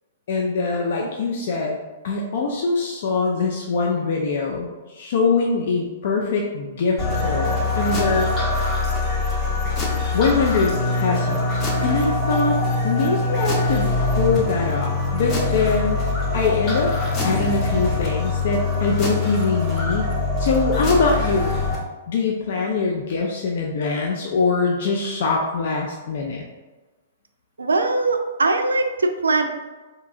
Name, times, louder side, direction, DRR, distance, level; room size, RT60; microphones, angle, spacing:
voice 1, 0.3-1.8 2.0-8.3 10.1-12.6 12.8-16.9 17.2-20.1 20.4-21.5 22.1-26.5, left 4 dB, 55° left, -1 dB, 0.4 m, -23 dB
sound 1, 7.0-21.8, left 3 dB, 30° left, 0.8 m, -23 dB
voice 2, 27.6-29.4, right 3 dB, 75° right, 5 dB, 0.3 m, -21 dB
3.7 x 2.8 x 2.4 m, 1.2 s
figure-of-eight pair, 110°, 0 cm